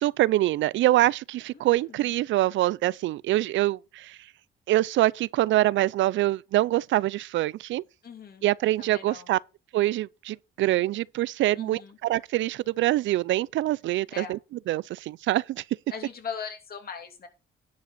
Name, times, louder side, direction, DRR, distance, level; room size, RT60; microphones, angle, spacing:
voice 1, 0.0-4.2 4.7-7.8 8.4-9.4 9.7-14.4 14.7-15.6, right 15 dB, 75° right, 0.4 m, -25 dB
voice 2, 1.5-2.1 8.0-8.5 8.8-9.3 11.5-12.0 14.1-14.4 15.9-17.3, left 6 dB, 50° left, 2.7 m, -40 dB
10.5 x 5.0 x 6.5 m
cardioid pair, 90°, 20 cm